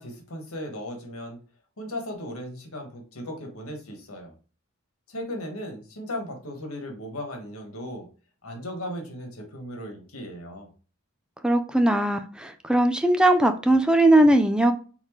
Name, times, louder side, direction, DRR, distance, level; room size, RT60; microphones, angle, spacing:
voice 1, 0.0-1.4 1.8-4.3 5.1-8.1 8.4-10.7, left 1 dB, 90° left, 3 dB, 1.4 m, -36 dB
voice 2, 11.4-14.7, right 1 dB, 5° right, 7 dB, 0.4 m, -19 dB
4.3 x 3.9 x 3.0 m, 0.37 s
head